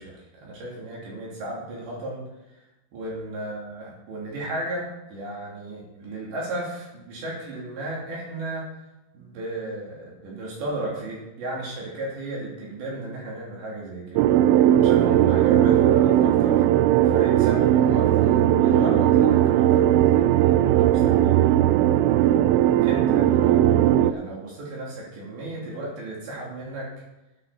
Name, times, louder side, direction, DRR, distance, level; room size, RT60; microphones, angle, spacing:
voice 1, 0.0-2.2 2.5-2.6 2.9-8.7 9.1-14.3 14.8-16.6 17.0-21.4 22.8-26.9, right 1 dB, 65° right, -4 dB, 5.0 m, -34 dB
sound 1, 14.2-24.1, right 12 dB, 85° right, 3.0 m, -18 dB
10.0 x 8.0 x 6.8 m, 0.97 s
omnidirectional pair, 5.7 m